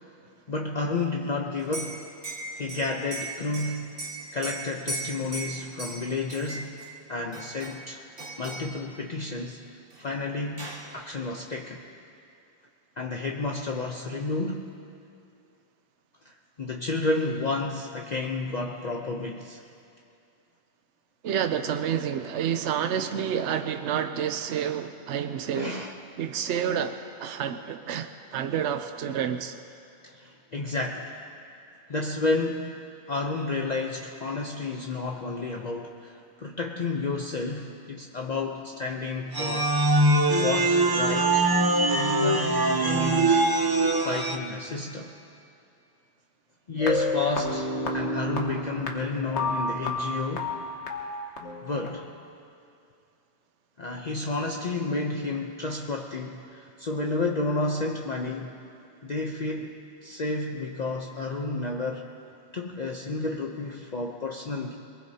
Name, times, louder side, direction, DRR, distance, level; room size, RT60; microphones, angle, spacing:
voice 1, 0.5-2.0 2.5-3.9 4.3-6.8 7.1-8.0 8.4-9.6 10.0-11.8 13.0-14.7 16.2-19.6 25.6-26.0 30.0-31.1 31.9-32.8 33.1-39.7 40.4-41.5 41.9-43.4 44.0-45.1 46.7-50.5 51.6-52.1 53.8-58.6 59.0-62.1 62.5-64.7, left 3 dB, 45° left, 1 dB, 0.8 m, -31 dB
Liquid, 1.6-6.9 7.3-7.9 8.2-8.8 9.9-10.0 10.3-10.9, right 2 dB, 70° right, 2.2 m, -38 dB
voice 2, 21.2-25.8 26.2-29.6, right 8 dB, 85° right, 9 dB, 0.9 m, -29 dB
sound 1, 39.3-44.4, right 2 dB, 20° right, 0.8 m, -22 dB
sound 2, 46.8-51.9, left 2 dB, 75° left, 1.7 m, -31 dB
23.0 x 20.5 x 2.8 m, 2.5 s
omnidirectional pair, 1.2 m